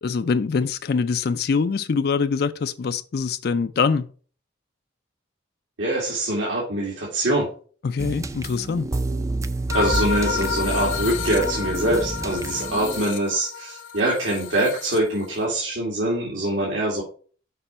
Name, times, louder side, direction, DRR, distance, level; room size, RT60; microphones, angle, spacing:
voice 1, 0.0-4.1 7.8-8.9, left 5 dB, 50° left, 0.4 m, -24 dB
voice 2, 5.8-7.5 9.7-17.0, right 1 dB, 85° right, 2.3 m, -24 dB
sound 1, 8.0-13.0, right 2 dB, 15° right, 0.4 m, -29 dB
sound 2, 9.7-15.4, left 7 dB, 80° left, 0.8 m, -30 dB
6.7 x 5.0 x 4.3 m
head